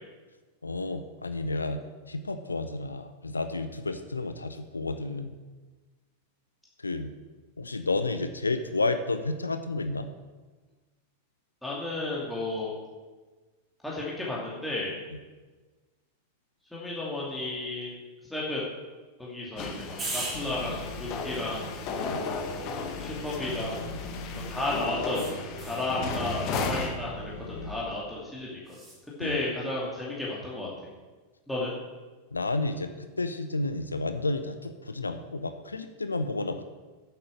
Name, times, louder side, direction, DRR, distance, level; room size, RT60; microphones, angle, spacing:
voice 1, 0.6-1.8 2.1-5.3 6.8-7.1 7.6-10.1 22.1-22.2 29.2-29.4 32.3-36.6, left 2 dB, 80° left, 9 dB, 0.7 m, -31 dB
voice 2, 11.6-12.8 13.8-14.9 16.7-17.9 18.3-18.7 19.2-21.7 23.0-23.9 24.5-25.3 25.6-27.3 27.6-28.8 29.2-30.7 31.5-31.7, left 2 dB, 5° left, -6 dB, 2.6 m, -33 dB
sound 1, 19.6-26.9, left 3 dB, 40° left, 1.5 m, -34 dB
sound 2, 20.0-24.4 25.1-25.9 28.7-29.0, right 2 dB, 20° right, 3.2 m, -41 dB
sound 3, 20.3-27.8, left 2 dB, 60° left, 1.5 m, -42 dB
9.3 x 8.6 x 6.6 m, 1.3 s
figure-of-eight pair, 90°, 0 cm